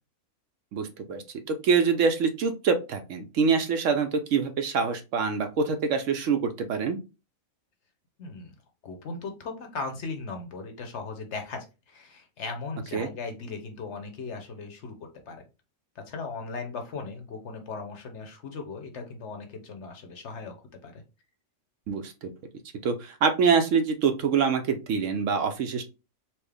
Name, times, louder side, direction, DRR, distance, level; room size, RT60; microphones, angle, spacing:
voice 1, 0.7-7.0 12.9-13.1 21.9-22.3 22.8-25.8, right 5 dB, 70° right, 7 dB, 0.9 m, -25 dB
voice 2, 8.2-8.5 8.8-15.0 15.3-15.4 16.0-20.5 20.8-21.0, left 4 dB, 60° left, 5 dB, 0.9 m, -38 dB
4.3 x 2.0 x 3.3 m, 0.29 s
omnidirectional pair, 1.5 m